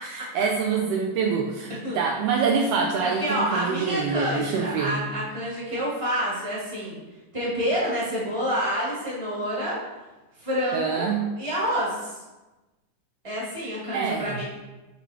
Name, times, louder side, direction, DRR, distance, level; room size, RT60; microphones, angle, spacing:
voice 1, 0.0-5.1 10.7-11.3 13.9-14.4, right 5 dB, 85° right, 1 dB, 1.4 m, -26 dB
voice 2, 3.0-7.0 7.3-9.8 10.4-12.2 13.2-14.4, equal, 15° right, -7 dB, 1.5 m, -28 dB
6.1 x 3.6 x 4.3 m, 1.1 s
omnidirectional pair, 3.3 m